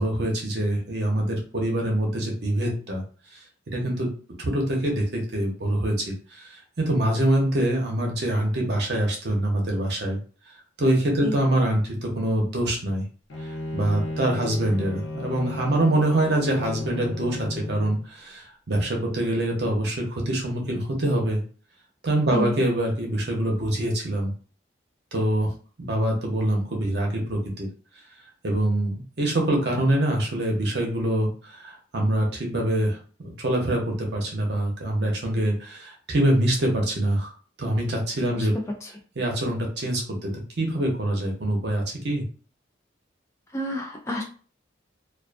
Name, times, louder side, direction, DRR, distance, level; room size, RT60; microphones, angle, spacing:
voice 1, 0.0-3.0 3.7-4.1 4.4-10.2 10.8-13.0 13.4-21.4 22.0-24.3 25.1-25.5 25.8-27.7 28.4-37.3 37.6-38.5 39.2-40.3 40.6-42.2, right 1 dB, 60° right, 0 dB, 0.7 m, -25 dB
Bowed string instrument, 13.3-18.1, left 2 dB, 75° left, 0.5 m, -34 dB
voice 2, 43.5-44.2, equal, 15° left, 1 dB, 0.3 m, -29 dB
2.4 x 2.3 x 2.4 m, 0.40 s
head